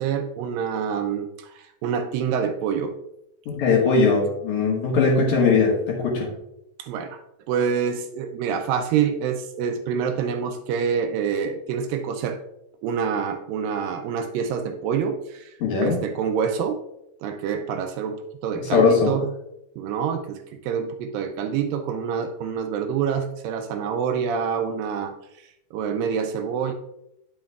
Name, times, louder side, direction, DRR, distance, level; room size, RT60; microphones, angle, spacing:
voice 1, 0.0-3.0 6.8-7.2 7.5-12.4 12.8-15.5 15.8-16.8 17.2-19.3 19.8-25.1 25.7-26.8, right 7 dB, 80° right, 6 dB, 2.2 m, -26 dB
voice 2, 3.5-6.3 15.6-16.0 18.6-19.1, left 4 dB, 60° left, -3 dB, 2.7 m, -20 dB
9.5 x 7.4 x 2.3 m, 0.84 s
omnidirectional pair, 4.2 m